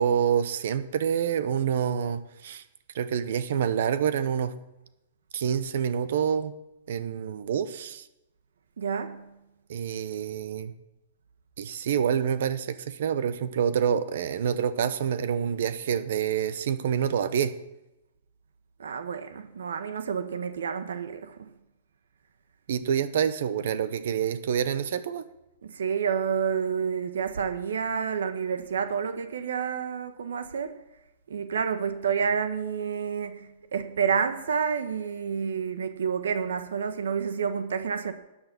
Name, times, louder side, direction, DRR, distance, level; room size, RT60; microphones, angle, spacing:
voice 1, 0.0-2.6 2.9-4.5 5.3-6.5 6.9-8.0 9.7-10.7 11.6-17.5 22.7-25.2, right 8 dB, 65° right, 1.1 m, -27 dB
voice 2, 8.8-9.3 18.8-21.3 25.6-30.7 31.3-38.1, right 6 dB, 85° right, 1.2 m, -29 dB
12.5 x 8.7 x 6.1 m
hypercardioid pair, 145°, 0 cm